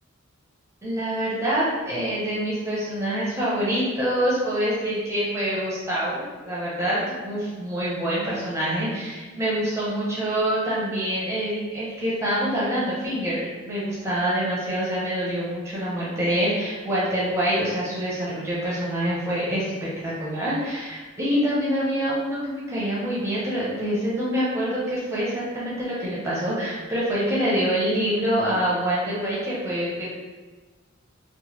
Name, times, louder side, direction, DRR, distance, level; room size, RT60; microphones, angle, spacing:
voice 1, 0.8-30.1, equal, 15° right, -8 dB, 0.5 m, -26 dB
3.2 x 2.1 x 2.9 m, 1.3 s
head